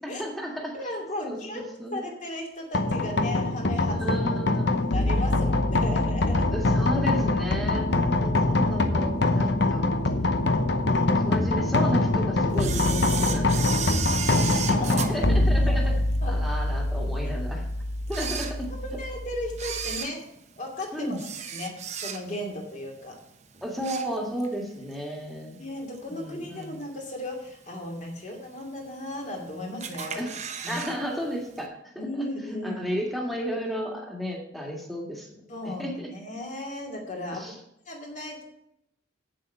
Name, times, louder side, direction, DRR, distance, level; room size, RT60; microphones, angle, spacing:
voice 1, 0.0-0.8 1.2-2.0 3.9-4.7 6.5-9.9 10.8-16.0 16.2-17.7 18.1-18.7 20.9-21.2 23.6-25.6 26.1-26.8 30.1-30.3 30.7-32.3 32.6-35.3 35.6-36.1 37.3-37.5, equal, ahead, -1 dB, 1.9 m, -33 dB
voice 2, 0.7-4.1 4.9-6.5 14.2-16.0 16.2-16.4 18.2-18.3 18.8-20.2 20.6-21.2 21.5-23.2 25.6-30.2 30.6-30.8 32.0-32.8 35.5-37.5 37.9-38.4, left 1 dB, 35° left, 1 dB, 2.5 m, -35 dB
sound 1, 2.7-19.9, left 2 dB, 55° left, 0.8 m, -24 dB
Camera, 12.6-16.2 16.7-16.8 17.5-17.6 18.0-19.0 19.5-22.5 22.9-23.2 23.5-24.6 24.9-25.0 25.9-26.0 26.6-27.0 27.4-27.5 27.7-27.8 28.0-28.1 28.9-29.4 29.8-31.0 31.2-31.3 31.6-31.7, right 7 dB, 35° right, 0.9 m, -34 dB
8.6 x 7.7 x 5.6 m, 0.78 s
head